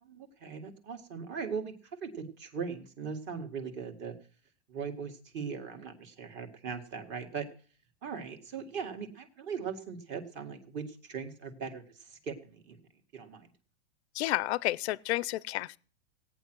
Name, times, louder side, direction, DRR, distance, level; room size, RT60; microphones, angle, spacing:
voice 1, 0.0-1.7 2.0-4.2 4.7-7.5 8.0-12.8 13.1-13.5, right 6 dB, 30° right, 2.0 m, -39 dB
voice 2, 14.1-15.8, left 17 dB, 60° left, 0.6 m, -31 dB
17.0 x 9.1 x 6.2 m
supercardioid pair, 155°, 37 cm